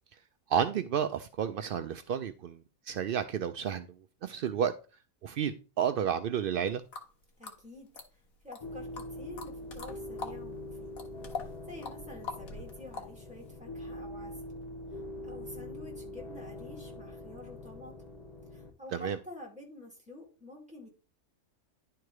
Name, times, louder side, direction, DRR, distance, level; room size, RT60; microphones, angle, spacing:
voice 1, 0.5-2.6 2.9-3.9 4.2-4.7 5.2-6.8 18.9-19.2, right 8 dB, 70° right, 0.5 m, -31 dB
sound 1, 6.9-7.1 7.4-8.6 9.0-10.4 10.7-13.5, left 5 dB, 85° left, 1.7 m, -42 dB
voice 2, 7.4-7.9 8.4-10.9 11.3-14.3 14.9-17.9 18.5-20.9, left 1 dB, 5° right, 2.4 m, -49 dB
sound 2, 8.6-18.7, left 1 dB, 30° left, 1.1 m, -43 dB
10.5 x 3.7 x 4.7 m
omnidirectional pair, 1.4 m